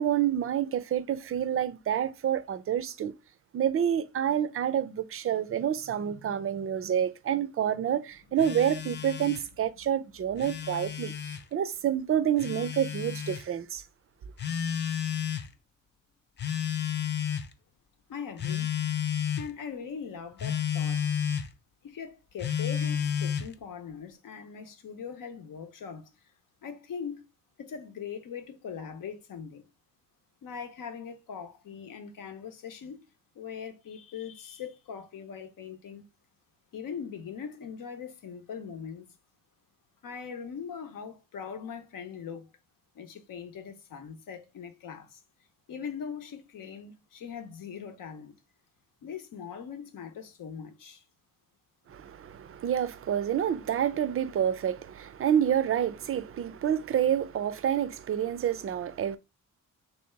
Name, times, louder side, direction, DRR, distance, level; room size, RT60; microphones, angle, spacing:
voice 1, 0.0-3.1 3.5-13.8 51.9-59.2, right 9 dB, 40° right, 0.4 m, -28 dB
Telephone, 8.4-9.5 10.2-11.4 12.4-13.4 14.4-15.5 16.4-17.5 18.4-19.5 20.4-21.5 22.4-23.5, left 8 dB, 35° left, 0.4 m, -31 dB
voice 2, 18.1-18.7 19.3-21.1 21.8-26.1 26.6-27.2 27.6-29.7 30.4-33.1 33.3-36.1 36.7-39.1 40.0-42.5 42.9-45.2 45.7-48.3 49.0-51.0, left 7 dB, 75° left, 0.8 m, -41 dB
3.3 x 2.8 x 4.4 m
wide cardioid pair, 145°, 33 cm